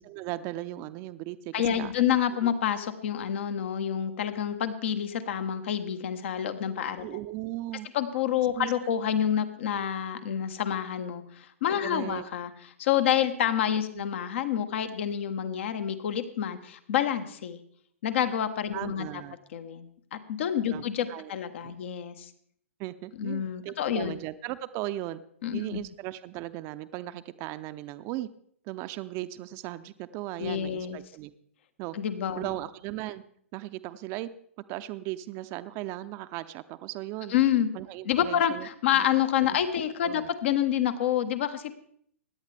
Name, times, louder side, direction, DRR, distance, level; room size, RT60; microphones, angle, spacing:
voice 1, 0.0-1.9 2.4-2.5 7.0-7.9 8.5-8.7 11.8-12.2 13.9-14.0 18.7-19.4 20.7-21.3 21.6-21.8 22.8-25.2 25.5-28.3 28.6-31.3 31.8-32.0 32.3-33.2 33.5-34.3 34.7-37.3 37.7-38.7 38.9-39.1 39.5-39.6 40.0-40.3, right 16 dB, 35° right, 12 dB, 0.6 m, -37 dB
voice 2, 1.5-7.1 7.9-12.5 12.8-17.6 18.0-19.2 19.5-22.3 23.2-24.1 25.4-25.8 30.4-31.0 31.9-32.5 37.3-37.7 38.0-41.7, left 9 dB, 60° left, 10 dB, 1.2 m, -28 dB
17.0 x 10.5 x 3.4 m, 0.65 s
hypercardioid pair, 115°, 7 cm